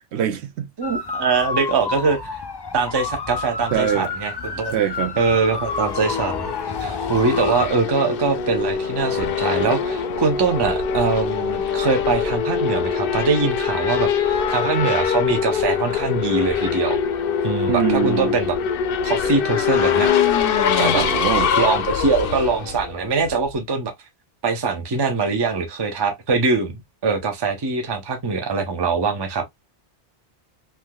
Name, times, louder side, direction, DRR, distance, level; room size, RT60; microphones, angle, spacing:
voice 1, 0.1-0.7 3.7-4.1 4.7-5.1 17.7-18.4 20.9-21.5, right 10 dB, 75° right, 0.8 m, -23 dB
sound 1, 0.8-7.7, left 4 dB, 40° left, 0.3 m, -30 dB
voice 2, 0.8-2.4 2.7-4.8 5.2-6.5 6.8-17.0 17.4-18.6 19.0-20.1 20.8-21.1 21.6-23.9 24.4-26.7 27.0-29.5, right 4 dB, 30° right, 0.6 m, -22 dB
Race car auto racing / Accelerating revving vroom, 5.4-23.5, left 7 dB, 65° left, 0.7 m, -23 dB
3.4 x 2.8 x 2.2 m
omnidirectional pair, 1.1 m